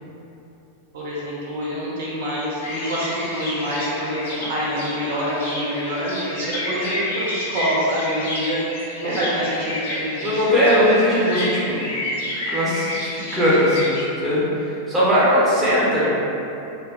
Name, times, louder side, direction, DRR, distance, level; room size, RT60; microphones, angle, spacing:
voice 1, 0.9-8.6 9.0-10.5, equal, 60° right, -8 dB, 0.6 m, -26 dB
sound 1, 2.6-14.0, left 1 dB, 55° left, 0.5 m, -30 dB
voice 2, 10.2-11.8 12.5-16.1, equal, 10° right, -10 dB, 0.7 m, -19 dB
2.6 x 2.2 x 2.2 m, 2.8 s
figure-of-eight pair, 90°, 0 cm